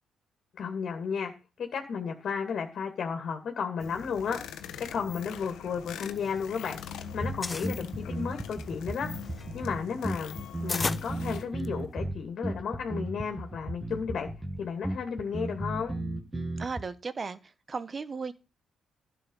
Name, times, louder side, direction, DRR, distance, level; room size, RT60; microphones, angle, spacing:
voice 1, 0.5-1.3 1.6-6.8 7.1-9.1 9.5-10.4 10.6-14.3 14.6-15.9, left 6 dB, 60° left, 2.4 m, -33 dB
sound 1, 3.8-11.4, left 8 dB, 80° left, 1.2 m, -43 dB
sound 2, 5.7-6.8 7.1-7.8 8.4-11.9, left 3 dB, 25° left, 0.7 m, -36 dB
sound 3, 7.2-16.8, right 1 dB, 20° right, 2.1 m, -35 dB
voice 2, 16.6-18.3, right 4 dB, 35° right, 1.1 m, -36 dB
11.5 x 7.7 x 5.5 m
cardioid pair, 90°, 0 cm